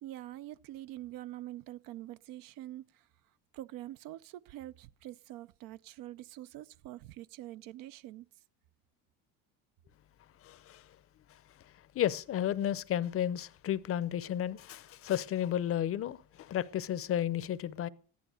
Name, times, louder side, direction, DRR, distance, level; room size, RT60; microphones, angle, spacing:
voice 1, 0.0-3.1 3.5-8.3, right 14 dB, 70° right, 0.6 m, -45 dB
voice 2, 10.4-10.8 11.9-17.9, left 11 dB, 40° left, 0.7 m, -32 dB
14.0 x 11.5 x 6.3 m
cardioid pair, 130°, 36 cm